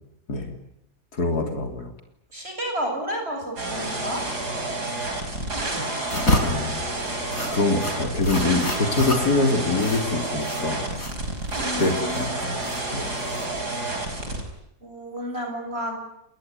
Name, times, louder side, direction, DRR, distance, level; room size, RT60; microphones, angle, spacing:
voice 1, 1.1-1.9 6.4-6.8 7.5-10.8 11.8-12.6 12.9-13.1, left 3 dB, 75° left, 4 dB, 3.9 m, -24 dB
voice 2, 2.3-4.2 11.6-12.3 14.8-16.0, equal, 40° right, 3 dB, 7.8 m, -31 dB
sound 1, 3.6-14.4, right 2 dB, 80° right, 5.8 m, -29 dB
sound 2, 6.0-14.0, left 1 dB, 60° left, 4.7 m, -30 dB
29.5 x 20.5 x 9.6 m, 0.83 s
omnidirectional pair, 1.7 m